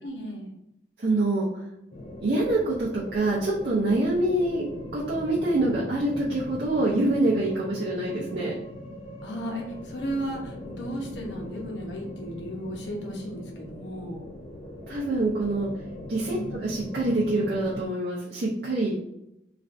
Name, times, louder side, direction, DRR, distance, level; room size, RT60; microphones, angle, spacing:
voice 1, 0.0-0.5 9.2-14.2 16.2-16.6, equal, 80° left, 0 dB, 0.8 m, -35 dB
voice 2, 1.0-1.6 2.2-4.7 4.9-8.5 14.9-15.7 16.1-18.9, right 2 dB, 60° right, -6 dB, 0.6 m, -25 dB
sound 1, 1.9-17.9, left 1 dB, 30° left, 0.3 m, -40 dB
3.2 x 2.5 x 2.5 m, 0.82 s
head